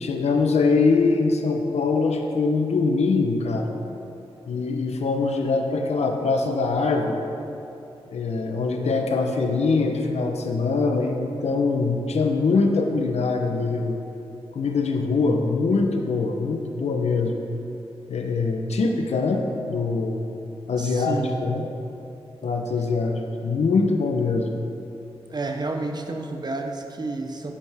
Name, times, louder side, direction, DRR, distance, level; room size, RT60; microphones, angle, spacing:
voice 1, 0.0-3.7 4.5-7.2 8.1-14.0 14.5-17.3 18.1-20.4 20.7-21.7 22.4-24.5, left 4 dB, 85° left, 3 dB, 0.9 m, -23 dB
voice 2, 20.8-21.3 25.3-27.5, right 3 dB, 40° right, 4 dB, 0.8 m, -30 dB
10.0 x 8.5 x 3.5 m, 2.8 s
wide cardioid pair, 115°, 11 cm